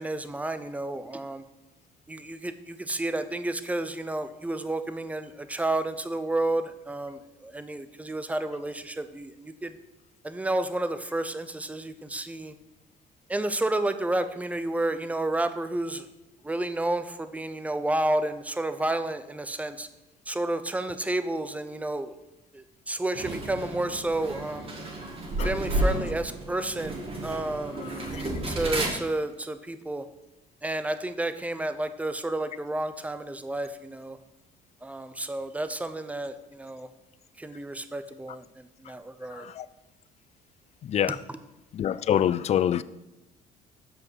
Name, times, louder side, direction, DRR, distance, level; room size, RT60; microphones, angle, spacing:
voice 1, 0.0-1.4 2.1-9.7 10.2-12.5 13.3-16.1 16.4-19.9 20.3-22.1 22.5-24.7 25.4-28.0 28.5-30.0 30.6-34.2 34.8-36.9 37.4-39.5 41.3-41.4, right 2 dB, 10° right, 11 dB, 0.6 m, -31 dB
sound 1, 23.1-28.9, right 1 dB, 35° right, 2.0 m, -32 dB
voice 2, 41.7-42.8, left 10 dB, 40° left, 17 dB, 0.4 m, -24 dB
7.4 x 5.3 x 6.1 m, 0.98 s
cardioid pair, 110°, 17 cm